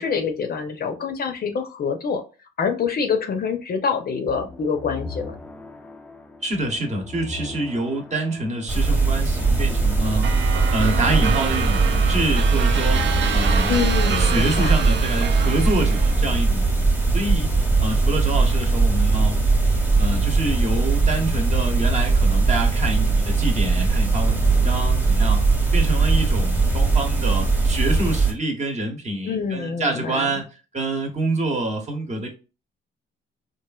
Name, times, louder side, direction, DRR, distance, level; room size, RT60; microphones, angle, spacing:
voice 1, 0.0-2.2 2.6-5.4 13.7-14.8 29.2-30.4, left 6 dB, 50° left, 0.6 m, -26 dB
sound 1, 4.3-13.8, left 4 dB, 5° left, 0.3 m, -38 dB
voice 2, 6.4-10.3 10.7-13.0 13.3-16.8 17.1-19.4 20.0-25.4 25.7-30.4 30.7-32.3, right 2 dB, 35° right, 0.9 m, -26 dB
sound 2, 8.7-28.3, right 3 dB, 10° right, 1.0 m, -20 dB
sound 3, 10.2-16.5, right 7 dB, 70° right, 0.5 m, -28 dB
3.0 x 2.5 x 2.3 m
cardioid pair, 90°, 20 cm